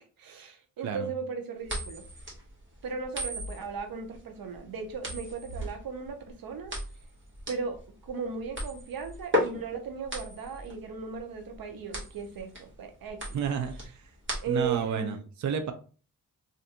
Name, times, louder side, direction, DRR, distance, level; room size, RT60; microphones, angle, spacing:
voice 1, 0.2-2.0 2.8-6.7 7.5-13.4 14.4-15.2, right 5 dB, 90° right, 6 dB, 0.7 m, -36 dB
sound 1, 1.6-14.8, left 1 dB, 35° right, 1.5 m, -36 dB
voice 2, 13.3-13.8 14.5-15.7, right 7 dB, 55° right, 8 dB, 0.5 m, -30 dB
3.3 x 2.6 x 2.7 m, 0.37 s
cardioid pair, 65°, 34 cm